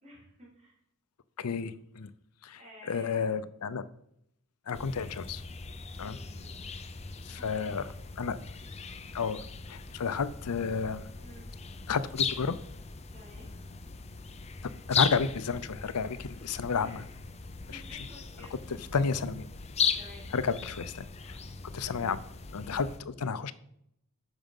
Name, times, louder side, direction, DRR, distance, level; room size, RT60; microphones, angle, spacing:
voice 1, 0.0-0.8 2.6-3.5 6.0-6.6 7.3-7.9 11.2-11.5 13.1-13.5 16.5-17.0 17.7-18.8 19.9-20.3 22.6-23.0, equal, 30° right, -4 dB, 4.1 m, -53 dB
voice 2, 1.4-2.1 2.4-2.6 2.9-3.8 4.7-5.4 6.0-6.2 7.3-7.8 8.2-8.4 9.1-11.1 11.9-12.6 14.9-17.0 17.7-17.8 18.7-19.5 20.3-21.4 21.7-22.2 22.5-23.5, left 5 dB, 85° left, 15 dB, 0.6 m, -31 dB
sound 1, 4.7-23.0, left 6 dB, 30° left, 0.7 m, -38 dB
9.1 x 6.2 x 5.3 m, 0.74 s
head